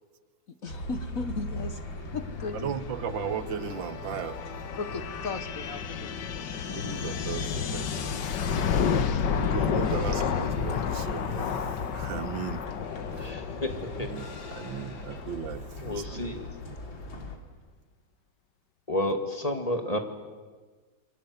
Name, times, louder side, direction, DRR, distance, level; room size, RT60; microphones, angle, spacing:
voice 1, 0.6-1.8 2.1-2.6 4.8-6.7, left 4 dB, 50° left, 9 dB, 1.5 m, -36 dB
sound 1, 0.7-17.4, left 2 dB, 90° left, 3.6 m, -40 dB
sound 2, 2.3-15.7, left 7 dB, 65° left, 1.8 m, -31 dB
voice 2, 2.5-4.4 6.7-8.2 9.3-12.6 13.1-13.3 14.0-16.4 16.7-16.8, right 9 dB, 80° right, 13 dB, 1.8 m, -37 dB
voice 3, 13.2-14.1 14.7-14.8 15.8-16.4 18.9-20.0, left 1 dB, 20° left, 5 dB, 2.5 m, -31 dB
29.0 x 24.0 x 8.0 m, 1.4 s
omnidirectional pair, 2.0 m